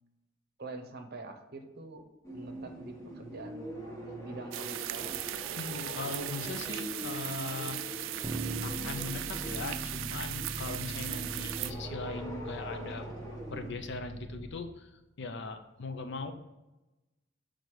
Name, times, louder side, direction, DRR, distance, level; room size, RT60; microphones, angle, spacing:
voice 1, 0.6-2.0 2.3-5.2, right 3 dB, 55° right, 5 dB, 0.7 m, -45 dB
sound 1, 2.2-13.7, equal, 15° left, 1.2 m, -44 dB
sound 2, 4.5-11.7, right 13 dB, 75° right, 0.3 m, -38 dB
voice 2, 5.6-7.8 8.6-13.1 13.5-16.3, left 3 dB, 65° left, 8 dB, 0.6 m, -40 dB
sound 3, 8.2-14.5, right 1 dB, 10° right, 0.8 m, -41 dB
6.2 x 3.9 x 4.8 m, 1.0 s
head